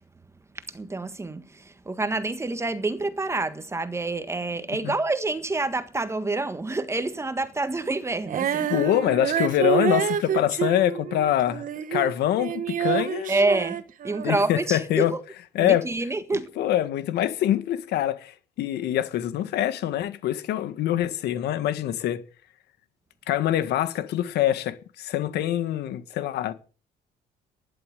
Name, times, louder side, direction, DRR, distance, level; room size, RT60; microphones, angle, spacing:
voice 1, 0.5-8.7 13.3-15.2 15.6-16.5, right 2 dB, 15° right, 1.6 m, -28 dB
Female singing, 8.3-12.1 12.4-14.5, right 9 dB, 50° right, 1.3 m, -27 dB
voice 2, 8.7-13.3 14.2-15.2 15.5-15.8 16.6-22.2 23.3-26.5, left 12 dB, 75° left, 1.7 m, -25 dB
12.0 x 11.0 x 6.8 m
cardioid pair, 110°, 17 cm